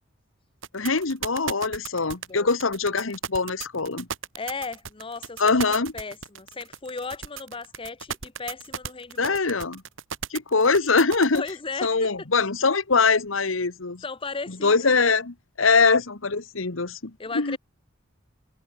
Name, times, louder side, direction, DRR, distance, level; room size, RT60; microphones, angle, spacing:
sound 1, 0.6-11.5, right 7 dB, 80° right, 2.8 m, -35 dB
voice 1, 0.7-4.1 5.4-5.9 9.2-9.8 10.3-11.4 11.8-14.0 14.5-17.6, left 4 dB, 85° left, 1.4 m, -23 dB
voice 2, 4.4-5.4 5.7-9.4 11.3-12.1 14.0-15.1 17.2-17.6, left 4 dB, 25° left, 0.9 m, -36 dB
head